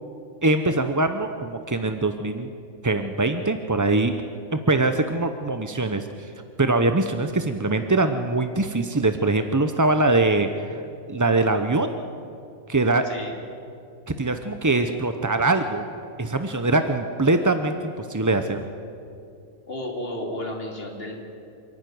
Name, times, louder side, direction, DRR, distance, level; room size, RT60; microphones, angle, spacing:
voice 1, 0.4-2.5 2.8-4.1 4.5-6.3 6.6-10.8 11.1-11.9 12.7-13.1 14.2-15.8 16.2-18.6, right 2 dB, 20° right, 8 dB, 0.4 m, -22 dB
voice 2, 13.0-13.4 19.7-21.2, left 1 dB, 40° left, 0 dB, 3.6 m, -32 dB
27.5 x 11.5 x 9.4 m, 2.6 s
omnidirectional pair, 1.5 m